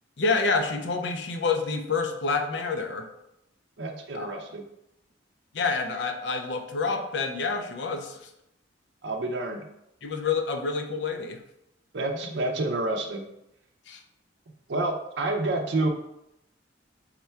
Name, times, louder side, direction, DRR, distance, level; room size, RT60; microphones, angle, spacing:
voice 1, 0.2-3.0 4.1-4.4 5.5-8.2 10.0-11.4 13.9-14.0, left 4 dB, 65° left, 5 dB, 0.5 m, -28 dB
voice 2, 3.8-4.6 9.0-9.7 11.9-13.3 14.7-15.9, right 2 dB, 65° right, 3 dB, 0.5 m, -28 dB
3.7 x 2.2 x 4.3 m, 0.82 s
head